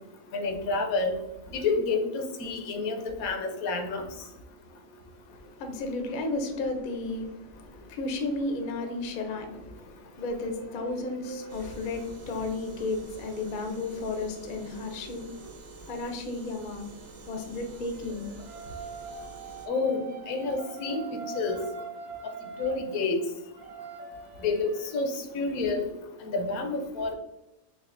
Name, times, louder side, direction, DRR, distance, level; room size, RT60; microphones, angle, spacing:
voice 1, 0.3-1.1 1.5-4.0 19.7-21.6 22.6-23.2 24.4-25.9 26.2-27.1, left 3 dB, 90° left, 4 dB, 1.1 m, -29 dB
voice 2, 5.3-16.8 17.3-18.3, left 2 dB, 55° left, 5 dB, 0.6 m, -34 dB
sound 1, 10.4-15.5 17.5-25.0, right 5 dB, 60° right, 0.7 m, -44 dB
sound 2, 11.5-19.7, right 4 dB, 85° right, 0.4 m, -48 dB
5.9 x 2.3 x 2.5 m, 0.98 s
omnidirectional pair, 1.5 m